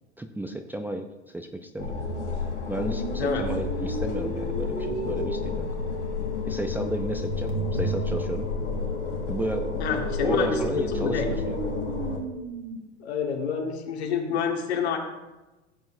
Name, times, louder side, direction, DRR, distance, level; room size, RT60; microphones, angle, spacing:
voice 1, 0.2-1.1 1.3-2.0 2.7-5.7 6.4-8.5 9.3-9.8 10.2-11.6, right 1 dB, 5° right, 5 dB, 0.6 m, -33 dB
sound 1, 1.8-12.2, left 4 dB, 90° left, 2.8 m, -31 dB
sound 2, 2.8-12.8, right 1 dB, 60° right, 1.9 m, -34 dB
voice 2, 3.1-3.5 9.8-11.3 13.0-15.0, left 6 dB, 65° left, 2 dB, 1.9 m, -28 dB
16.0 x 7.6 x 2.7 m, 1.1 s
figure-of-eight pair, 80°, 34 cm